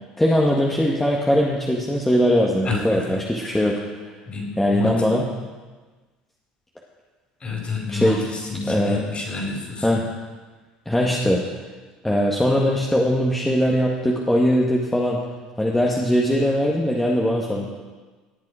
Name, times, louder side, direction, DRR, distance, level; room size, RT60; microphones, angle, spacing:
voice 1, 0.2-4.1 4.6-5.2 7.9-8.2 8.7-9.0 9.8-10.0 10.9-11.4 12.0-15.2 15.6-17.7, equal, 10° left, -3 dB, 1.7 m, -20 dB
voice 2, 2.6-3.2 3.4-3.6 4.3-5.0 7.4-9.9, left 4 dB, 35° left, 0 dB, 4.8 m, -29 dB
18.0 x 7.4 x 5.0 m, 1.3 s
hypercardioid pair, 70°, 3 cm